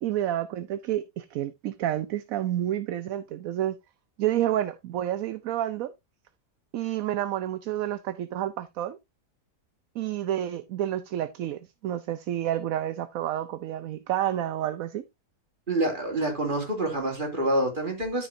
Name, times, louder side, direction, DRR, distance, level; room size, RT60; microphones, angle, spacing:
voice 1, 0.0-3.8 4.2-5.9 6.7-9.0 9.9-15.0, right 12 dB, 65° right, 0.9 m, -29 dB
voice 2, 15.7-18.3, right 1 dB, 30° right, 3.2 m, -27 dB
13.0 x 5.7 x 2.7 m
omnidirectional pair, 1.8 m